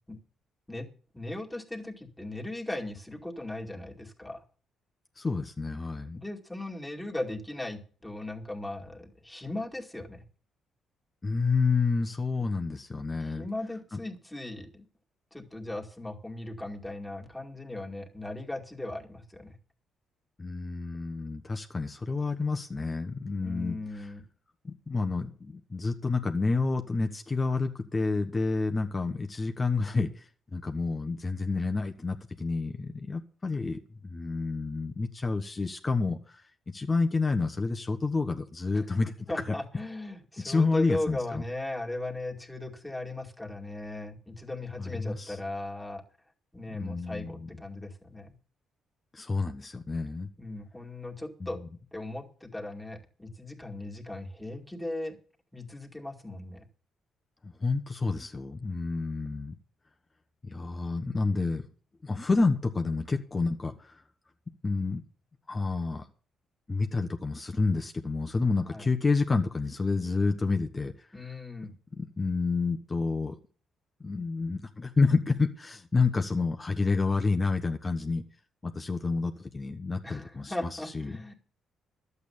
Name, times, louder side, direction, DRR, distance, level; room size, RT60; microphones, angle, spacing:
voice 1, 1.1-4.4 6.1-10.2 13.2-14.9 15.3-19.5 23.4-24.2 38.7-38.8 39.3-46.0 46.5-48.3 50.4-51.6 51.9-55.2 55.5-56.6 68.7-68.9 71.1-71.7 80.0-81.3, left 2 dB, 5° left, 1 dB, 2.3 m, -38 dB
voice 2, 5.2-6.2 11.2-13.5 20.4-23.8 24.6-39.5 40.4-41.4 44.8-45.4 46.7-47.5 49.1-50.3 51.4-51.5 57.4-59.5 60.4-61.6 62.0-64.0 64.6-65.0 65.5-66.1 66.7-71.1 72.0-73.4 74.0-78.2 78.6-80.7 80.9-81.2, left 3 dB, 25° left, 5 dB, 1.2 m, -29 dB
12.0 x 8.2 x 7.1 m, 0.41 s
cardioid pair, 90°, 0 cm